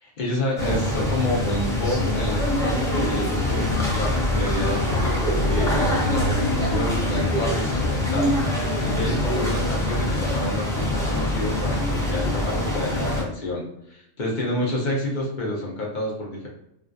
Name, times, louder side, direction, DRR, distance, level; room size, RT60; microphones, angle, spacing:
voice 1, 0.0-13.6 13.9-16.5, left 1 dB, 45° left, -3 dB, 0.8 m, -29 dB
sound 1, 0.6-13.2, left 1 dB, 5° left, 0.6 m, -24 dB
3.5 x 2.4 x 2.5 m, 0.83 s
omnidirectional pair, 1.3 m